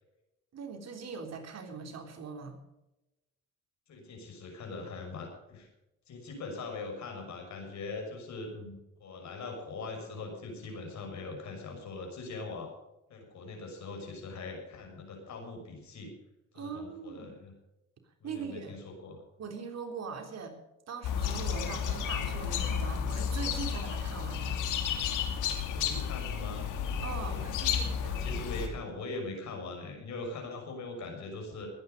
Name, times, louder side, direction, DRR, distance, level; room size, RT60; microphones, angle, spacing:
voice 1, 0.5-2.6 16.5-17.3 18.2-18.8 19.4-20.5 20.9-24.6 27.0-28.4, right 5 dB, 60° right, 4 dB, 3.7 m, -41 dB
voice 2, 3.9-5.7 6.1-12.7 13.1-16.1 16.5-17.5 18.2-19.2 25.7-26.6 27.2-31.7, left 3 dB, 65° left, 3 dB, 6.5 m, -41 dB
sound 1, 21.0-28.7, left 7 dB, 90° left, 2.6 m, -32 dB
21.0 x 9.9 x 5.3 m, 0.94 s
cardioid pair, 90°, 30 cm